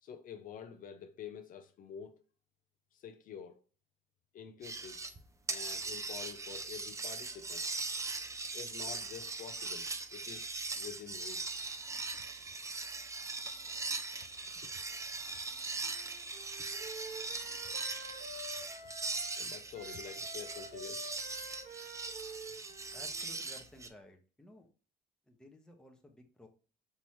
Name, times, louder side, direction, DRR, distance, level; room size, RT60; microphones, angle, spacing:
voice 1, 0.0-2.2 2.9-3.6 4.3-5.0 5.5-7.7 8.5-11.6 15.3-15.4 17.5-17.6 19.4-21.1, left 7 dB, 55° left, 0.6 m, -48 dB
sound 1, 4.6-5.2 5.5-23.9, right 3 dB, 20° right, 0.5 m, -40 dB
Wind instrument woodwind instrument, 15.8-19.4 19.7-23.5, right 1 dB, 55° right, 1.6 m, -49 dB
voice 2, 22.9-24.7 25.3-26.5, left 1 dB, 5° left, 1.0 m, -56 dB
5.7 x 3.0 x 3.1 m
cardioid pair, 110°, 17 cm